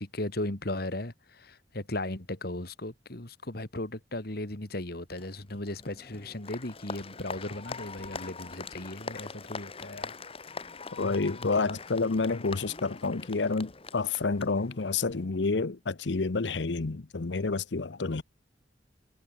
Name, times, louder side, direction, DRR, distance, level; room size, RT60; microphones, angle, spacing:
voice 1, 0.0-10.1 11.3-11.8, left 1 dB, 60° left, 2.7 m, -37 dB
Applause, 5.2-15.3, left 4 dB, 35° left, 1.5 m, -43 dB
voice 2, 10.9-18.2, left 3 dB, 90° left, 0.8 m, -29 dB
head